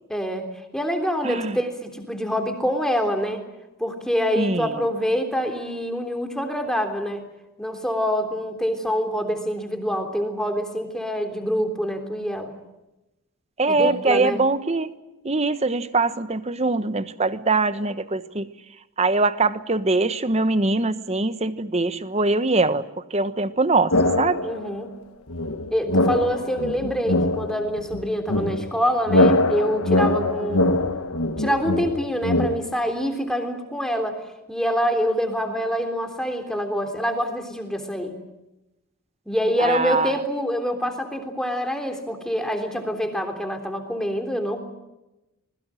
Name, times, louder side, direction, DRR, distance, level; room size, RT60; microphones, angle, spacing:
voice 1, 0.1-3.4 3.8-7.3 7.6-12.5 13.7-14.4 24.4-24.9 25.7-30.8 31.4-34.2 34.5-38.2 39.2-44.6, equal, 5° left, 5 dB, 3.4 m, -26 dB
voice 2, 1.2-1.6 4.4-4.9 13.6-14.9 15.2-18.5 19.0-22.8 23.1-24.4 39.6-40.1, right 3 dB, 30° right, 13 dB, 1.1 m, -22 dB
sound 1, 23.9-24.7 25.3-32.6, left 2 dB, 85° left, 1.6 m, -23 dB
26.5 x 21.5 x 7.7 m, 0.97 s
head